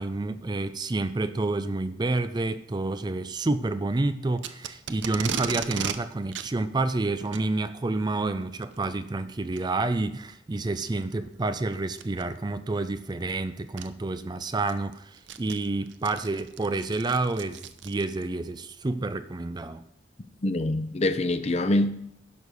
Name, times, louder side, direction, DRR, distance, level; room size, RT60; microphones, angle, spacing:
voice 1, 0.0-19.8, right 2 dB, 20° right, 0.4 m, -29 dB
Packing tape duct tape, 4.4-6.0 6.3-6.5 7.2-7.5 8.6-8.8 9.5-9.6 10.3-10.4 11.9-12.2 13.3-13.4 13.8-13.9 14.4-18.3, right 7 dB, 70° right, 0.6 m, -35 dB
voice 2, 20.4-21.9, left 1 dB, 35° left, 0.6 m, -24 dB
11.0 x 6.4 x 5.4 m
head